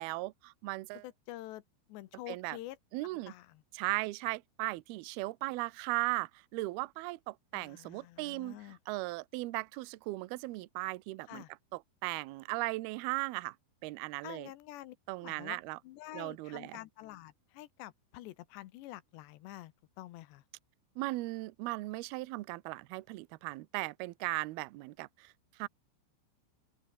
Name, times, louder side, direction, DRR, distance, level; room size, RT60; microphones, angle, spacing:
voice 1, 0.0-1.1 2.3-2.6 2.9-3.3 3.7-11.4 11.7-13.6 13.8-14.5 15.1-15.8 16.1-16.8 21.0-25.7, right 21 dB, 80° right, 2.2 m, -37 dB
voice 2, 1.0-1.6 1.9-2.8 3.3-3.6 7.5-8.8 11.3-11.5 14.2-15.0 15.2-15.6 15.8-20.4, left 16 dB, 75° left, 2.9 m, -47 dB
open air
omnidirectional pair, 5.5 m